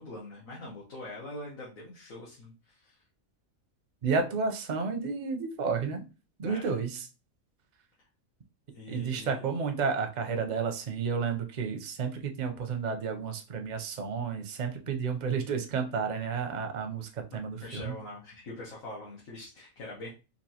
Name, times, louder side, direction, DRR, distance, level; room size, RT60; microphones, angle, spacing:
voice 1, 0.0-3.0 6.5-6.8 8.7-9.4 17.6-20.1, left 2 dB, 80° left, -6 dB, 1.5 m, -43 dB
voice 2, 4.0-6.0 6.4-7.1 8.9-18.0, right 5 dB, 50° right, 5 dB, 0.5 m, -31 dB
4.4 x 2.5 x 2.8 m, 0.31 s
omnidirectional pair, 1.4 m